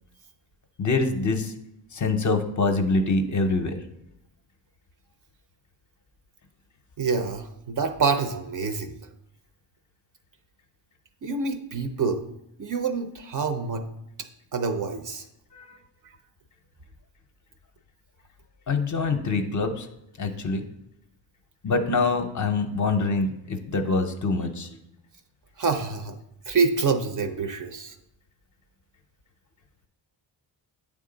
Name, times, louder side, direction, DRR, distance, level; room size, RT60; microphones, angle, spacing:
voice 1, 0.8-1.5 1.9-3.7 15.5-15.8 18.7-19.9 20.2-20.6 21.6-24.7, left 3 dB, 40° left, 6 dB, 0.6 m, -25 dB
voice 2, 7.0-9.0 11.2-12.2 12.6-13.9 14.5-15.3 25.6-26.2 26.5-27.9, right 4 dB, 45° right, 8 dB, 0.5 m, -26 dB
8.6 x 3.6 x 3.8 m, 0.82 s
wide cardioid pair, 110°, 47 cm